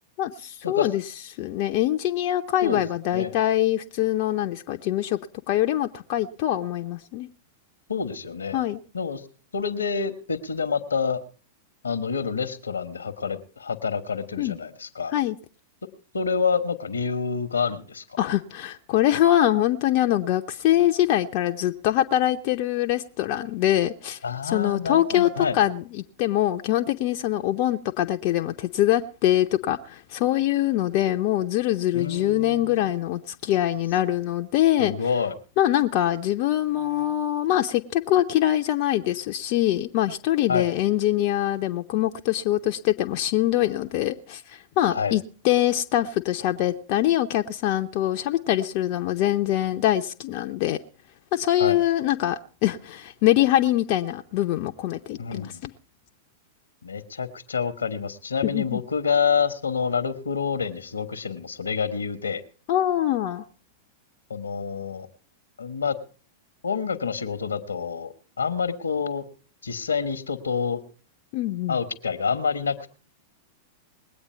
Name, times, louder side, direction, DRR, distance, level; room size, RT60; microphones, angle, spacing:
voice 1, 0.2-1.0 1.4-5.2 5.5-7.3 8.5-8.8 14.4-14.6 15.1-15.4 18.2-34.9 35.6-50.8 51.3-55.7 58.4-58.8 62.7-63.4 71.3-71.8, left 13 dB, 50° left, 0.7 m, -24 dB
voice 2, 7.9-8.6 8.9-9.2 9.5-11.2 11.8-15.1 16.1-18.0 24.2-25.6 31.9-32.9 34.8-35.3 40.5-40.7 44.9-45.1 51.6-51.8 55.2-55.6 56.8-62.4 64.3-65.1 65.6-66.0 66.6-69.2 69.6-70.8 71.7-72.9, left 6 dB, 80° left, 1.2 m, -27 dB
21.0 x 8.8 x 4.5 m
figure-of-eight pair, 95°, 0 cm